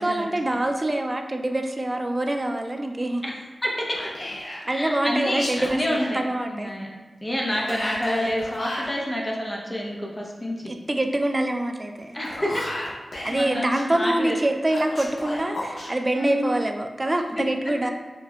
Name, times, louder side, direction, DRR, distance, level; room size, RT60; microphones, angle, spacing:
voice 1, 0.0-3.2 4.6-6.8 7.6-7.8 10.7-12.2 13.2-17.9, right 1 dB, 30° right, 5 dB, 0.3 m, -25 dB
voice 2, 3.6-4.0 4.7-6.2 6.5-6.9 7.2-10.6 12.1-12.6 13.3-14.4 16.1-16.5, left 1 dB, 20° left, -2 dB, 0.6 m, -28 dB
Whispering, 3.9-4.7 5.3-6.1 7.7-8.9 12.0-13.8 14.7-15.9, left 1 dB, 70° left, 0.8 m, -34 dB
5.0 x 2.1 x 2.3 m, 1.3 s
wide cardioid pair, 75°, 0 cm